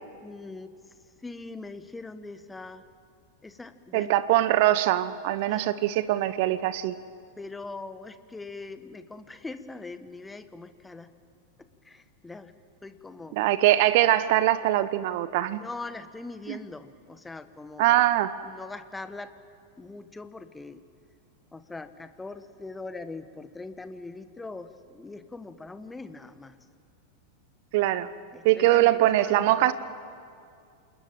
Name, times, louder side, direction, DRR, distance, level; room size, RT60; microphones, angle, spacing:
voice 1, 0.2-0.7 1.2-2.8 3.4-4.1 5.5-5.6 7.4-11.1 11.6-12.5 12.8-13.4 15.6-18.1 18.4-19.3 19.8-20.8 21.5-26.6 28.3-29.7, left 3 dB, 10° left, 11 dB, 1.4 m, -41 dB
voice 2, 3.9-7.0 13.3-15.6 16.5-16.6 17.8-18.3 27.7-28.1 28.4-29.7, right 14 dB, 50° right, 15 dB, 1.0 m, -22 dB
27.5 x 21.0 x 9.1 m, 2.3 s
figure-of-eight pair, 90°, 0 cm